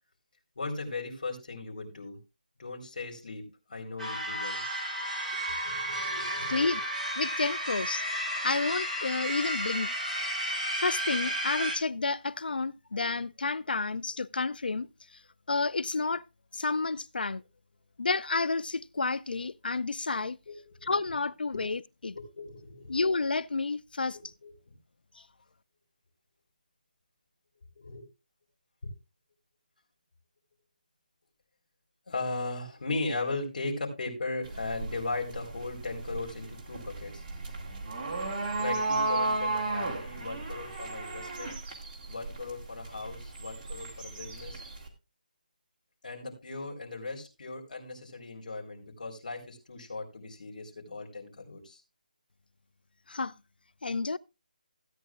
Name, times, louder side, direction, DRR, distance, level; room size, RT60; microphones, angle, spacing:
voice 1, 0.6-2.2 2.6-4.6 5.3-6.8 20.5-20.9 21.5-21.6 22.1-23.0 24.1-24.5 27.8-28.0 28.8-28.9 32.1-37.2 38.6-41.5 42.1-44.6 46.0-51.8, left 3 dB, 60° left, 4.2 m, -38 dB
sound 1, 4.0-11.8, equal, 5° left, 2.1 m, -33 dB
voice 2, 6.5-6.8 7.2-8.1 8.4-9.9 10.8-14.9 15.5-16.2 16.5-17.4 18.0-20.4 20.8-22.2 22.9-24.2 53.1-53.3 53.8-54.2, left 3 dB, 90° left, 0.4 m, -30 dB
sound 2, 34.4-44.9, right 3 dB, 20° right, 2.0 m, -34 dB
16.0 x 9.3 x 2.4 m
figure-of-eight pair, 170°, 5 cm